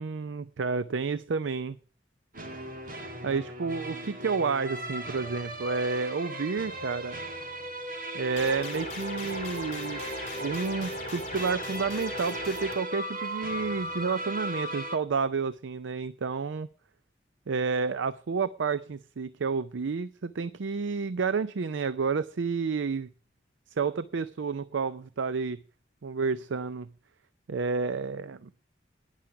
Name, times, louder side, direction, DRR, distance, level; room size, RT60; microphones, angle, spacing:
voice 1, 0.0-1.8 3.2-7.2 8.1-10.1 10.4-16.7 17.5-23.1 23.8-25.6 26.0-26.9 27.5-28.7, right 5 dB, 80° right, 15 dB, 0.5 m, -30 dB
sound 1, 2.3-15.0, right 1 dB, 45° right, 1.9 m, -37 dB
sound 2, 8.4-12.7, left 1 dB, 35° left, 2.9 m, -37 dB
10.5 x 10.0 x 5.0 m, 0.40 s
head